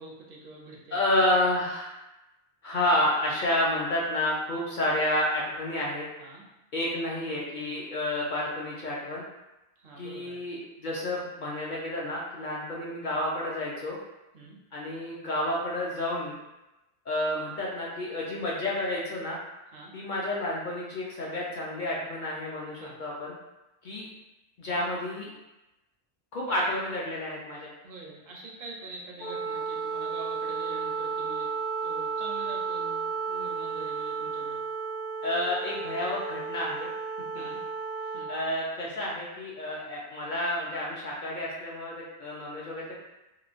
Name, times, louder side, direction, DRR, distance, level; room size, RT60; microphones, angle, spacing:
voice 1, 0.0-1.2 6.2-6.4 9.8-10.4 14.3-14.6 19.7-19.9 22.8-23.0 24.7-24.8 26.5-26.6 27.8-31.5 31.8-34.6 37.3-37.6 38.0-38.3, right 3 dB, 65° right, -2 dB, 0.7 m, -45 dB
voice 2, 0.9-1.9 2.6-6.0 6.7-9.2 10.0-14.0 14.7-16.4 17.1-19.4 19.9-23.3 23.8-24.1 24.6-25.3 26.3-27.7 35.2-36.9 38.3-43.0, left 1 dB, 60° left, -5 dB, 0.6 m, -30 dB
Wind instrument woodwind instrument, 29.2-38.4, right 5 dB, 75° left, 0.9 m, -33 dB
3.0 x 2.0 x 2.4 m, 0.99 s
omnidirectional pair, 1.1 m